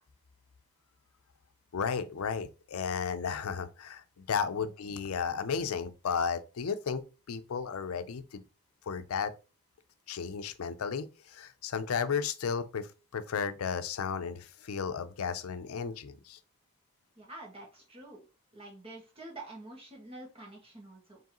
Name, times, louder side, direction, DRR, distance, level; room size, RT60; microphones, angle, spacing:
voice 1, 1.7-8.4 8.8-9.3 10.1-16.4, left 6 dB, 85° left, 0.5 m, -34 dB
voice 2, 17.2-18.2 18.5-21.2, right 2 dB, 25° right, 1.6 m, -47 dB
4.7 x 3.1 x 3.0 m
head